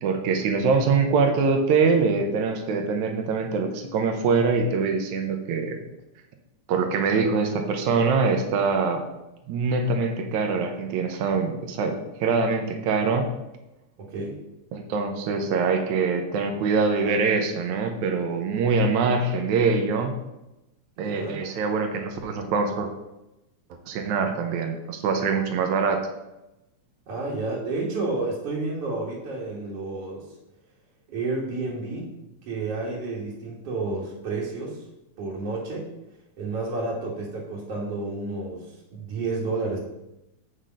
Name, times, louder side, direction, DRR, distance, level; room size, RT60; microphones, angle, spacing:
voice 1, 0.0-5.8 6.7-9.0 9.5-13.3 14.7-20.1 21.0-22.9 23.9-26.1, right 4 dB, 85° right, 5 dB, 2.3 m, -24 dB
voice 2, 14.0-14.4 21.0-21.4 27.1-30.3 31.1-32.1 32.4-34.8 35.2-35.9 36.4-39.8, right 3 dB, 60° right, -5 dB, 2.3 m, -30 dB
8.1 x 5.9 x 5.1 m, 0.93 s
omnidirectional pair, 3.3 m